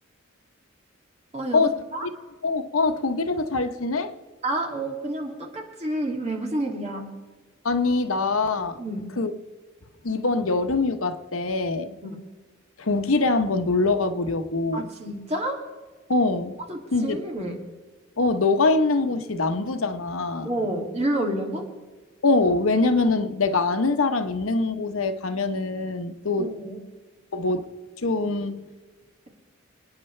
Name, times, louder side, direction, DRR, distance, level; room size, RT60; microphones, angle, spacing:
voice 1, 1.3-2.1 4.4-7.1 8.8-9.0 12.0-12.2 14.7-15.6 16.7-17.6 20.4-21.7 26.4-26.8, right 1 dB, 30° right, 1 dB, 2.5 m, -29 dB
voice 2, 2.4-4.1 7.6-8.8 9.2-9.3 10.0-12.0 12.8-14.9 16.1-16.6 16.9-17.2 18.2-20.5 22.2-26.5 27.3-27.7 28.0-28.6, left 3 dB, 85° left, 9 dB, 1.0 m, -23 dB
28.0 x 9.7 x 3.3 m, 1.3 s
head